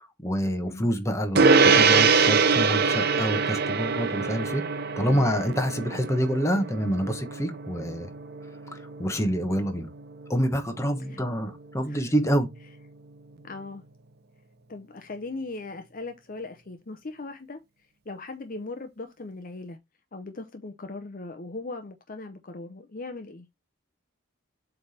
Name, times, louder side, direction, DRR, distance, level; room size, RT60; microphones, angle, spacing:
voice 1, 0.0-4.6 5.0-8.1 8.7-9.9 10.3-12.5, equal, 15° left, 1.1 m, -27 dB
Gong, 1.4-11.1, right 5 dB, 50° right, 0.7 m, -24 dB
voice 2, 13.4-13.8 14.7-17.6 18.1-19.8 20.1-23.5, left 3 dB, 45° left, 0.7 m, -39 dB
7.7 x 3.4 x 4.2 m
head